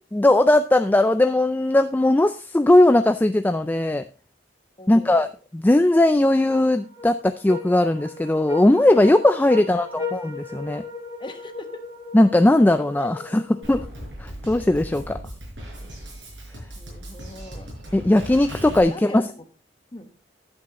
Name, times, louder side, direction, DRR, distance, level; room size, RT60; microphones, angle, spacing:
voice 1, 0.1-4.0 4.9-5.3 5.5-10.8 12.1-13.8 14.2-15.2 17.9-19.2, left 1 dB, 10° left, 9 dB, 0.3 m, -18 dB
voice 2, 4.8-5.3 9.5-10.1 11.2-11.8 13.0-13.3 15.6-15.9 16.8-17.7 18.8-19.5 19.9-20.1, left 1 dB, 25° left, 7 dB, 1.1 m, -41 dB
sound 1, 6.5-14.0, left 3 dB, 20° right, 4.7 m, -37 dB
Drum kit, 13.6-18.8, equal, 85° right, 5.3 m, -38 dB
10.5 x 8.5 x 2.9 m, 0.35 s
head